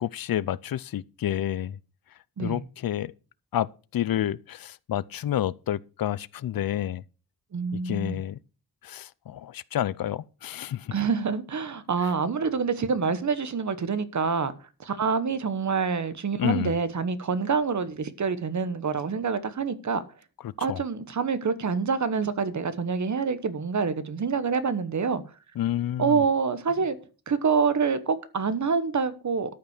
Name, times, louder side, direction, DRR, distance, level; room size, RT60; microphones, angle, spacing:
voice 1, 0.0-1.8 2.4-3.1 3.5-7.0 7.7-8.4 8.8-10.9 12.0-12.1 16.4-16.8 20.4-20.8 25.6-26.3, left 11 dB, 70° left, 0.6 m, -29 dB
voice 2, 7.5-8.2 10.9-14.5 14.8-20.0 20.6-25.2 26.0-27.0 27.3-29.6, right 5 dB, 50° right, 1.1 m, -26 dB
13.0 x 5.8 x 6.5 m
wide cardioid pair, 150°, 36 cm